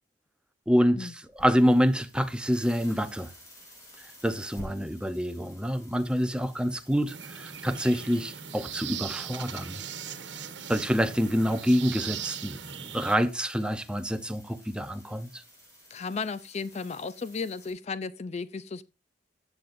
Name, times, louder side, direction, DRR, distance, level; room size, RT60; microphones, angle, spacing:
voice 1, 0.7-3.3 4.2-9.8 10.7-15.4, equal, 5° right, 0.8 m, -27 dB
sound 1, 1.3-17.7, equal, 20° left, 6.2 m, -53 dB
sound 2, 7.1-13.2, right 8 dB, 90° right, 1.3 m, -39 dB
voice 2, 15.9-18.8, left 4 dB, 40° left, 0.4 m, -34 dB
14.5 x 8.9 x 2.6 m
head